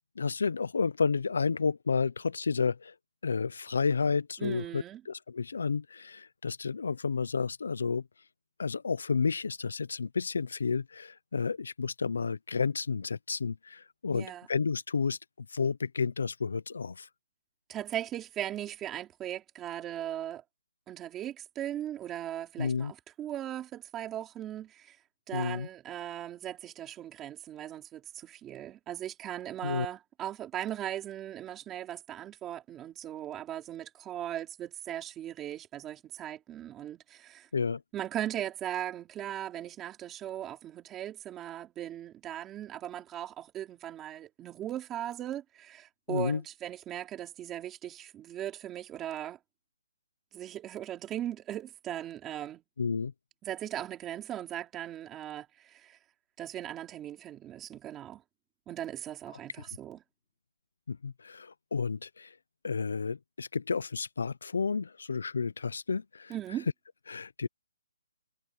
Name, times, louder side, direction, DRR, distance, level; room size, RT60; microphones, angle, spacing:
voice 1, 0.2-2.9 3.2-8.0 8.6-17.1 22.6-22.9 25.3-25.7 29.6-29.9 37.5-37.8 46.1-46.4 52.8-53.1 60.9-62.3 62.6-66.3 67.1-67.5, left 5 dB, 70° left, 0.6 m, -31 dB
voice 2, 4.4-5.0 14.1-14.5 17.7-20.4 20.9-25.0 25.3-37.5 37.9-49.4 50.3-52.6 53.4-56.0 56.4-58.2 58.7-60.0 66.3-66.7, right 11 dB, 10° right, 3.1 m, -38 dB
hypercardioid pair, 175°, 0 cm